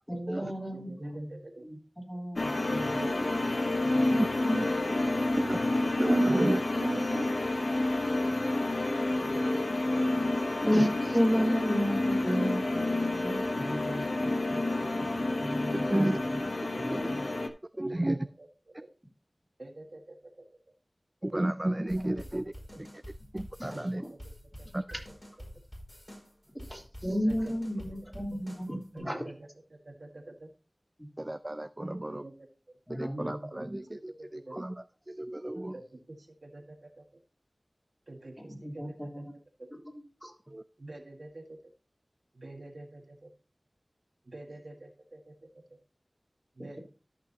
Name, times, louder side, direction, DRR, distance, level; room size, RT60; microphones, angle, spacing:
voice 1, 0.1-1.3 1.6-1.8 2.1-3.1 3.8-4.2 10.4-14.0 14.5-14.6 15.4-16.4 16.7-17.3 23.6-23.8 26.7-29.2 31.0-31.1 32.9-33.7 38.4-39.2 40.2-40.3, equal, 5° left, -2 dB, 3.1 m, -33 dB
voice 2, 0.7-1.7 2.7-3.6 4.4-5.2 7.1-7.3 9.2-10.1 13.9-15.4 15.8-16.3 16.7-16.8 17.8-18.9 19.6-20.5 22.0-22.5 23.7-24.8 27.1-27.5 28.9-30.5 31.9-32.5 33.5-34.6 35.7-37.0 38.1-39.2 39.6-39.7 40.8-41.7 42.3-43.3 44.2-45.8 46.5-46.8, right 2 dB, 70° right, 2 dB, 1.7 m, -48 dB
sound 1, 2.4-17.5, left 2 dB, 70° left, 0.9 m, -29 dB
voice 3, 4.1-4.7 5.4-5.6 6.0-7.2 15.9-16.2 16.9-17.1 17.8-18.2 21.2-22.4 23.3-24.0 24.7-24.8 31.2-32.2 33.0-34.7 35.1-35.7 40.5-40.6, right 1 dB, 30° right, 12 dB, 0.4 m, -31 dB
sound 2, 21.9-29.0, equal, 25° left, 5.4 m, -47 dB
13.5 x 6.1 x 2.8 m, 0.36 s
wide cardioid pair, 50°, 0 cm